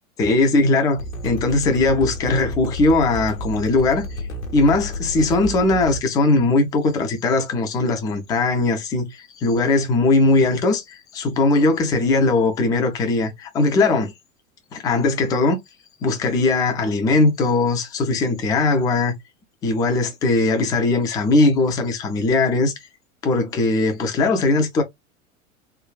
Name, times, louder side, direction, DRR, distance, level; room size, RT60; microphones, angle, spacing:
voice 1, 0.2-4.1 4.5-14.1 14.7-15.6 16.0-19.1 19.6-22.7 23.2-24.8, left 3 dB, 10° left, 0.3 m, -19 dB
sound 1, 1.0-6.0, equal, 75° left, 0.9 m, -30 dB
3.3 x 2.2 x 2.2 m
figure-of-eight pair, 85°, 41 cm